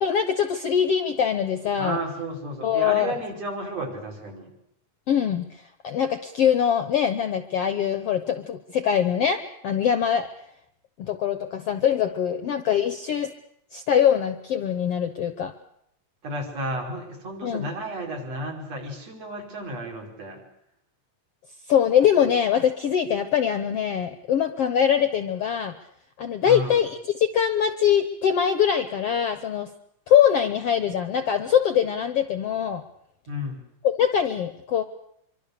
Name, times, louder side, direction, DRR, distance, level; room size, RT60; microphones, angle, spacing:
voice 1, 0.0-2.0 2.6-3.2 5.1-10.3 11.0-13.3 13.7-15.5 17.4-17.7 21.7-25.7 26.2-29.7 30.1-32.8 33.8-34.8, left 8 dB, 65° left, 10 dB, 1.6 m, -23 dB
voice 2, 1.8-4.5 16.2-20.4 26.4-26.8 33.3-33.7, right 1 dB, 45° right, 1 dB, 6.4 m, -33 dB
26.0 x 24.5 x 6.7 m, 0.74 s
omnidirectional pair, 3.9 m